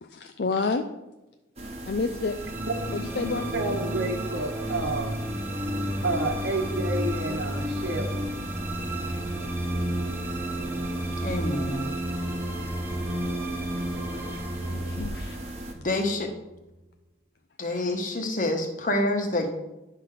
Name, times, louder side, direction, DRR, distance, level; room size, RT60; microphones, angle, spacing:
voice 1, 0.0-0.9 1.8-2.4 2.9-3.8 13.8-13.9 14.1-15.5, left 4 dB, 60° left, 6 dB, 0.5 m, -30 dB
sound 1, 1.6-15.7, right 1 dB, 35° right, 1.1 m, -39 dB
sound 2, 2.2-16.6, equal, 10° right, 0.8 m, -32 dB
voice 2, 3.5-5.2 6.0-8.3, right 2 dB, 80° right, 1 dB, 1.3 m, -30 dB
voice 3, 11.2-11.9 15.8-16.3 17.6-19.5, left 1 dB, 45° left, 3 dB, 1.3 m, -27 dB
10.5 x 3.9 x 6.5 m, 1.0 s
head